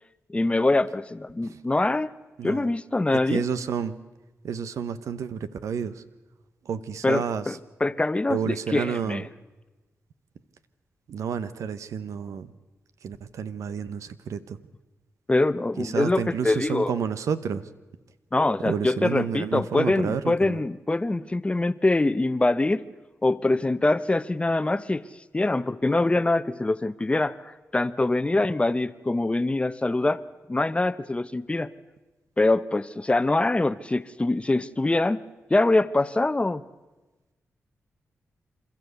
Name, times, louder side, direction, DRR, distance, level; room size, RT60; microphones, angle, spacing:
voice 1, 0.3-2.1 2.4-3.4 7.0-9.3 15.3-16.9 18.3-22.8 23.2-25.0 25.3-30.2 30.5-31.7 32.4-35.2 35.5-36.6, left 2 dB, 20° left, 14 dB, 0.8 m, -24 dB
voice 2, 2.4-2.7 3.3-3.9 4.4-6.0 6.6-7.6 8.3-9.3 11.1-12.5 13.0-14.6 15.8-17.7 18.6-20.6, right 7 dB, 85° right, 13 dB, 0.9 m, -30 dB
27.5 x 13.5 x 8.1 m, 1.2 s
cardioid pair, 65°, 5 cm